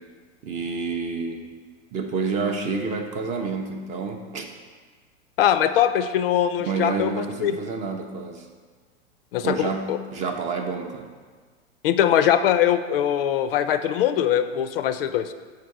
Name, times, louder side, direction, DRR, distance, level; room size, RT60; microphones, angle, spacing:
voice 1, 0.4-1.5 1.9-4.5 6.6-8.5 9.4-11.1, right 4 dB, 20° right, 4 dB, 0.4 m, -29 dB
voice 2, 5.4-7.5 9.3-10.0 11.8-15.3, left 10 dB, 50° left, 11 dB, 0.4 m, -22 dB
6.6 x 4.6 x 4.6 m, 1.5 s
hypercardioid pair, 105°, 36 cm